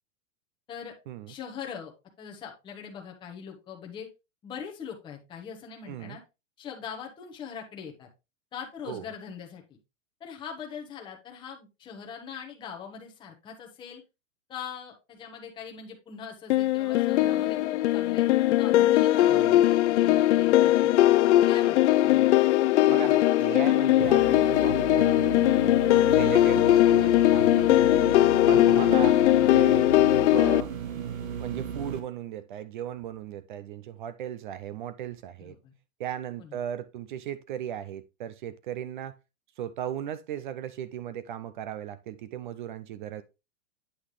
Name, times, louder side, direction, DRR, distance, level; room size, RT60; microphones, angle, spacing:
voice 1, 1.3-1.9 2.2-4.1 4.4-6.2 6.6-8.1 8.5-9.8 10.2-14.0 14.5-18.3 18.6-21.0 21.5-22.4 35.4-35.7 36.4-36.6, left 7 dB, 10° left, 1.0 m, -42 dB
voice 2, 5.9-6.2 8.9-9.1 19.3-19.6 22.9-25.1 26.1-28.0 28.5-29.2 29.5-30.7 31.4-35.6 36.0-39.2 39.6-43.2, right 10 dB, 40° right, 0.5 m, -37 dB
sound 1, 16.5-30.6, left 14 dB, 60° left, 0.5 m, -20 dB
sound 2, 24.0-32.0, right 7 dB, 90° right, 1.8 m, -35 dB
8.6 x 5.6 x 3.1 m
supercardioid pair, 165°, 39 cm